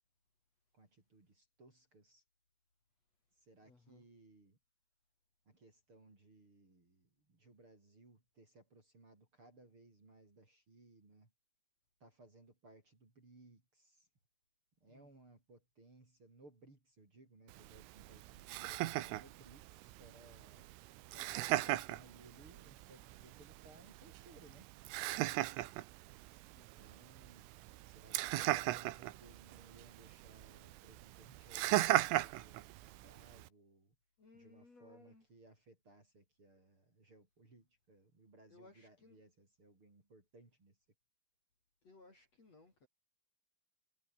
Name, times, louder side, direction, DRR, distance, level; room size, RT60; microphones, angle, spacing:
voice 1, 0.7-2.2 3.3-4.6 5.5-11.3 12.0-14.1 14.8-20.7 21.3-24.7 25.1-25.4 26.8-27.5 27.8-34.0 34.3-40.8, right 2 dB, 25° right, 6.0 m, -63 dB
voice 2, 3.6-4.1 14.8-15.1 20.6-20.7 21.1-21.8 25.2-25.5 26.6-26.7 34.2-35.2 38.5-39.2 41.8-42.9, left 3 dB, 35° left, 5.7 m, -62 dB
Laughter, 17.5-33.5, right 17 dB, 90° right, 3.8 m, -39 dB
omnidirectional pair, 5.6 m